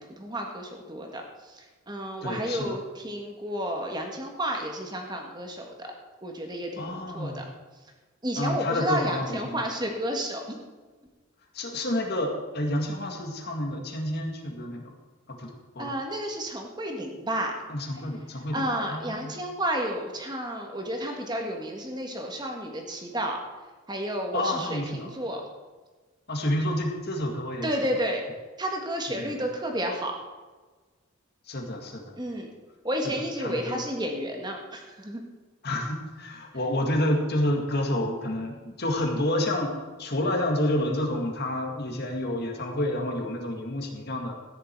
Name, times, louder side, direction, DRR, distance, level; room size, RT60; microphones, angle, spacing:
voice 1, 0.0-5.9 6.2-6.9 7.1-7.4 8.2-10.6 15.8-17.5 18.5-23.4 23.9-25.4 27.6-28.2 28.6-30.2 32.2-32.5 32.8-35.2, right 1 dB, 20° right, 2 dB, 1.6 m, -31 dB
voice 2, 2.2-2.8 6.8-7.4 8.4-9.6 11.5-14.9 15.3-15.9 17.7-19.3 24.3-25.1 26.3-27.7 29.1-29.4 31.5-32.1 33.0-33.1 33.4-33.8 35.6-39.7 40.0-44.3, left 1 dB, 50° left, 2 dB, 1.9 m, -29 dB
14.0 x 9.9 x 4.6 m, 1.3 s
head